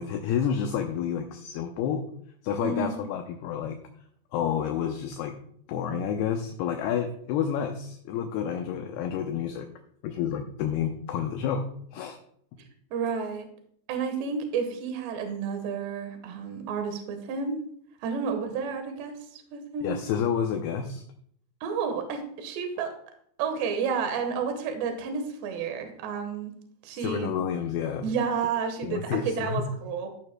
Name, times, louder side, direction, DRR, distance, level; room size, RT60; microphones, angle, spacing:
voice 1, 0.0-2.0 2.4-3.8 4.3-5.3 5.7-9.7 10.0-11.7 11.9-12.2 19.8-21.0 27.0-28.1 28.8-29.6, left 8 dB, 80° left, 4 dB, 2.4 m, -29 dB
voice 2, 2.6-3.1 12.9-13.5 13.9-17.6 18.0-19.9 21.6-22.9 23.4-26.5 26.8-27.3 28.0-30.1, right 6 dB, 75° right, 5 dB, 3.4 m, -31 dB
14.0 x 9.2 x 2.2 m, 0.65 s
omnidirectional pair, 5.1 m